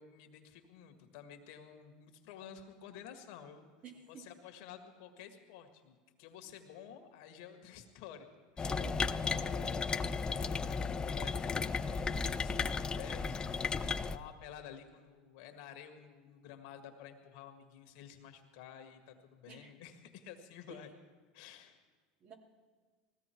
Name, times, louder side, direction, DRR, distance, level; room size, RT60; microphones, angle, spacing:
voice 1, 0.0-3.6 4.1-8.3 8.5-8.8 9.2-13.5 14.0-20.9 21.3-21.8, left 8 dB, 65° left, 6 dB, 1.8 m, -52 dB
voice 2, 3.8-4.3 8.7-9.3 19.5-19.7 20.7-20.8 22.2-22.3, right 5 dB, 40° right, 1 dB, 3.0 m, -51 dB
sound 1, 8.6-14.2, left 5 dB, 20° left, 0.6 m, -34 dB
19.5 x 15.5 x 4.6 m, 1.4 s
hypercardioid pair, 95°, 4 cm